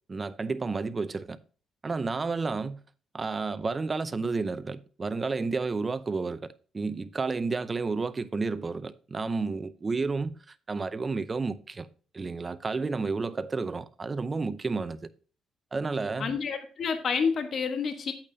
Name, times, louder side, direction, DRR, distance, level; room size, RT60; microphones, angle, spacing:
voice 1, 0.1-1.4 1.8-2.8 3.1-11.9 12.1-15.1 15.7-16.4, right 4 dB, 30° right, 0.6 m, -31 dB
voice 2, 16.2-18.1, left 6 dB, 55° left, 1.4 m, -29 dB
8.8 x 8.5 x 2.8 m
cardioid pair, 90°, 0 cm